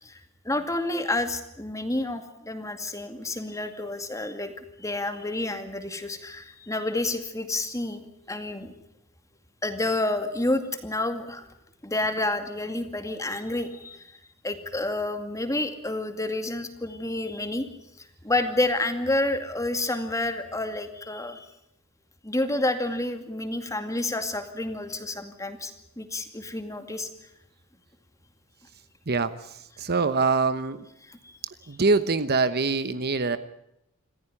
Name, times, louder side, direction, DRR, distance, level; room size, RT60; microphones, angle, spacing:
voice 1, 0.0-4.5 4.8-8.7 9.6-11.5 11.8-14.2 14.4-17.7 18.0-21.5 22.2-27.1 31.0-31.3, left 2 dB, 15° left, 7 dB, 2.3 m, -29 dB
voice 2, 29.1-30.8 31.7-33.4, right 4 dB, 45° right, 12 dB, 1.0 m, -24 dB
27.0 x 15.0 x 9.8 m, 0.82 s
head